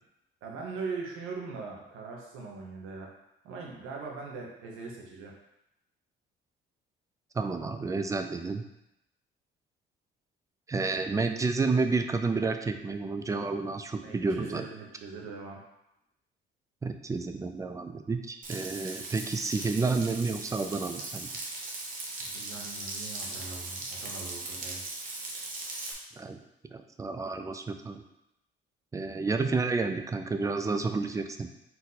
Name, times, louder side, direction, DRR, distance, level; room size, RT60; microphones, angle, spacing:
voice 1, 0.4-3.1 3.4-5.3 14.0-15.6 22.2-24.8, right 4 dB, 85° right, -1 dB, 1.1 m, -41 dB
voice 2, 7.4-8.6 10.7-14.6 16.8-21.3 26.2-26.4 26.7-28.0 28.9-31.5, right 4 dB, 15° right, 7 dB, 0.3 m, -30 dB
Frying (food), 18.4-25.9, right 2 dB, 40° right, 0.9 m, -39 dB
4.3 x 2.6 x 4.0 m, 0.86 s
cardioid pair, 110°, 21 cm